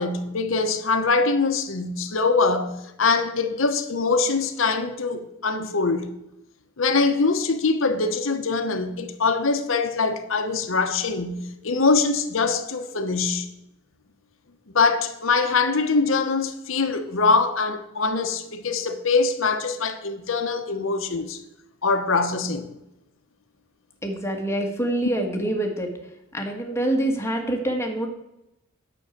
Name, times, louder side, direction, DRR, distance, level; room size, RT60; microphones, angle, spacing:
voice 1, 0.0-6.1 6.8-13.5 14.7-21.4 21.8-22.7, left 4 dB, 70° left, 1.0 m, -23 dB
voice 2, 24.0-25.9 26.3-28.1, right 1 dB, 15° left, 1.5 m, -25 dB
9.1 x 6.3 x 8.4 m
head